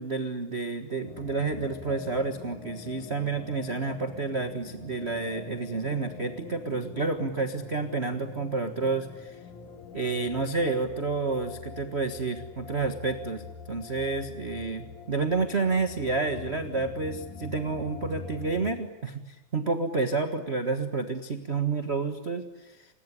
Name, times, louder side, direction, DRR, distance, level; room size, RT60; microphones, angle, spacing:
voice 1, 0.0-9.4 9.9-22.9, right 3 dB, 40° right, 8 dB, 1.0 m, -30 dB
sound 1, 1.1-18.7, left 5 dB, 75° left, 3.3 m, -44 dB
28.5 x 20.5 x 9.9 m, 0.97 s
omnidirectional pair, 3.5 m